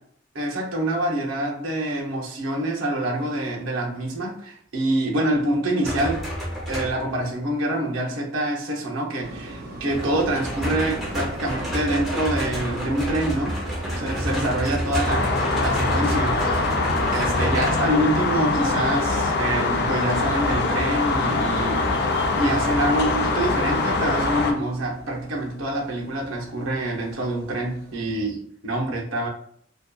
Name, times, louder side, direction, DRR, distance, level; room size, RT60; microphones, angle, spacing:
voice 1, 0.3-6.2 6.7-13.6 14.0-16.7 17.1-29.3, right 1 dB, 90° right, -1 dB, 0.7 m, -26 dB
sound 1, 5.8-7.2 9.9-18.0 20.2-20.6, equal, ahead, 0.5 m, -29 dB
sound 2, 9.2-28.2, right 1 dB, 50° right, 0.6 m, -40 dB
sound 3, 15.1-24.5, left 3 dB, 55° left, 0.4 m, -23 dB
2.7 x 2.2 x 2.2 m, 0.65 s
head